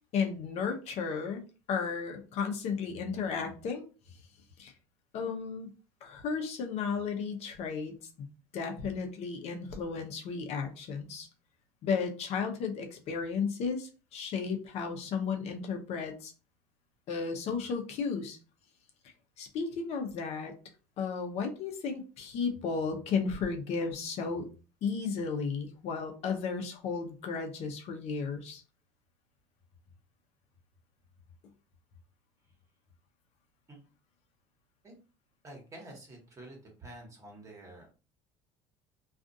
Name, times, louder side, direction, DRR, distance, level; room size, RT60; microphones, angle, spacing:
voice 1, 0.1-1.4 1.7-3.8 4.6-4.7 5.1-5.7 6.0-7.9 8.5-11.3 11.8-16.3 17.1-18.4 19.4-20.5 21.0-24.4 24.8-28.6, left 5 dB, 60° left, 4 dB, 0.7 m, -34 dB
voice 2, 35.4-37.9, right 1 dB, 25° right, 0 dB, 1.2 m, -48 dB
2.4 x 2.4 x 2.6 m, 0.34 s
cardioid pair, 115°, 13 cm